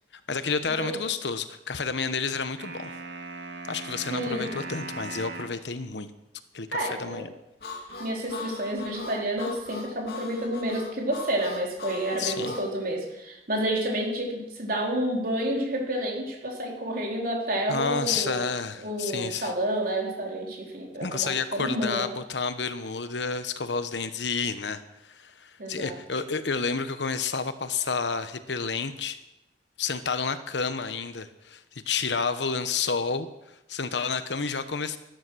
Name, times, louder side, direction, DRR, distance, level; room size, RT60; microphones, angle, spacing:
voice 1, 0.3-2.9 3.7-6.1 6.5-7.3 12.2-12.6 17.7-19.5 21.0-29.2 29.8-35.0, left 5 dB, 90° left, 11 dB, 1.1 m, -30 dB
sound 1, 2.6-5.6, right 3 dB, 85° right, 2.3 m, -38 dB
voice 2, 4.1-4.5 6.7-7.3 8.0-18.5 18.8-22.1 25.6-26.0, right 1 dB, 55° right, 0 dB, 3.9 m, -30 dB
Harmonica, 7.6-12.7, left 3 dB, 65° left, 2.2 m, -40 dB
13.0 x 12.5 x 6.3 m, 0.90 s
head